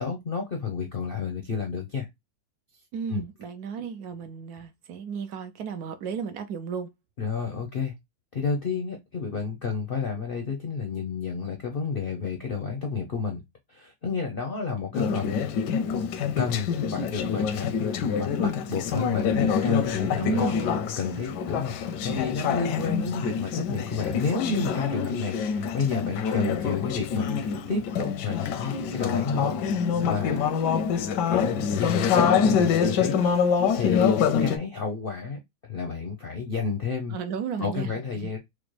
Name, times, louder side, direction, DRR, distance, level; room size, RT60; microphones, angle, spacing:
voice 1, 0.0-2.1 3.1-3.2 3.8-3.9 7.2-7.9 8.3-13.4 13.7-15.4 16.4-20.5 21.0-30.5 31.3-34.1 34.4-37.2 37.6-38.4, left 5 dB, 60° left, 0.5 m, -31 dB
voice 2, 2.9-6.9 20.2-20.8 37.1-37.9 38.2-38.3, right 6 dB, 70° right, 1.0 m, -34 dB
Conversation / Chatter, 14.9-34.6, left 6 dB, 80° left, 1.2 m, -26 dB
4.9 x 2.1 x 3.1 m
omnidirectional pair, 1.9 m